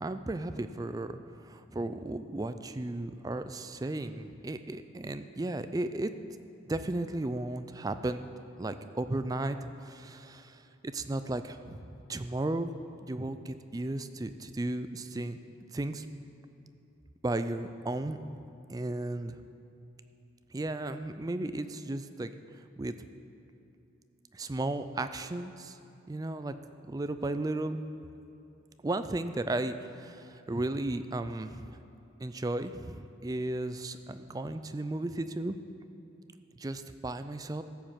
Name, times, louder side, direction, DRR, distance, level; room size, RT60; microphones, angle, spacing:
voice 1, 0.0-6.1 6.7-8.3 8.6-9.6 9.8-12.7 13.0-15.4 15.7-16.1 17.2-18.2 18.7-19.4 20.5-22.9 24.3-25.8 26.1-26.5 26.9-27.8 28.8-31.8 32.2-35.6 36.5-37.6, right 2 dB, 20° right, 10 dB, 0.3 m, -35 dB
14.0 x 5.2 x 7.3 m, 2.9 s
head